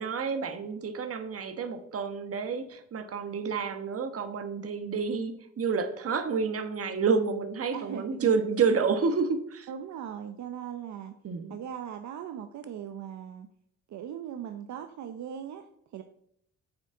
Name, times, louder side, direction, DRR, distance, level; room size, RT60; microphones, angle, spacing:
voice 1, 0.0-9.7 11.2-11.5, right 5 dB, 50° right, 9 dB, 1.3 m, -29 dB
voice 2, 7.7-8.3 9.7-11.1 11.5-13.5 13.9-16.0, right 9 dB, 70° right, 7 dB, 0.8 m, -39 dB
10.0 x 7.5 x 3.8 m, 0.69 s
cardioid pair, 90°, 30 cm